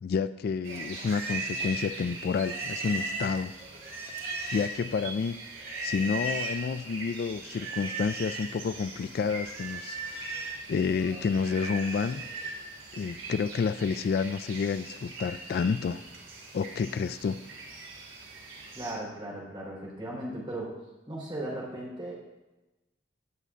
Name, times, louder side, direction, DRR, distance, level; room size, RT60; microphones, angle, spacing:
voice 1, 0.0-3.5 4.5-5.4 5.8-12.2 12.9-16.0 16.5-17.4, left 5 dB, 55° left, 12 dB, 0.3 m, -30 dB
sound 1, 0.6-18.9, right 3 dB, 80° right, 3.1 m, -44 dB
Livestock farm animals working animals, 0.7-4.9 5.5-6.6 7.4-8.6 8.9-12.6, right 2 dB, 55° right, 2.3 m, -37 dB
voice 2, 18.7-20.7 21.1-22.1, right 1 dB, 25° right, -3 dB, 4.0 m, -37 dB
17.0 x 8.1 x 2.5 m, 1.1 s
head